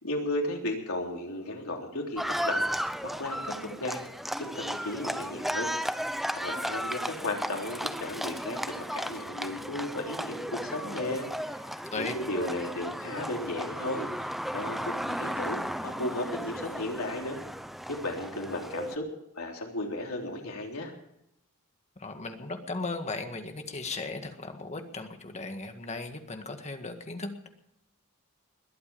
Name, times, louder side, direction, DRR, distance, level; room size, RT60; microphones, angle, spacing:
voice 1, 0.0-4.0 4.4-5.7 6.3-11.7 11.9-14.3 14.5-17.4 17.9-19.1 19.3-20.9, left 1 dB, 75° left, 0 dB, 3.6 m, -35 dB
Livestock farm animals working animals, 2.2-19.0, equal, ahead, 0.7 m, -35 dB
voice 2, 21.9-27.5, left 3 dB, 30° left, 6 dB, 1.8 m, -37 dB
21.5 x 8.6 x 7.0 m, 0.78 s
head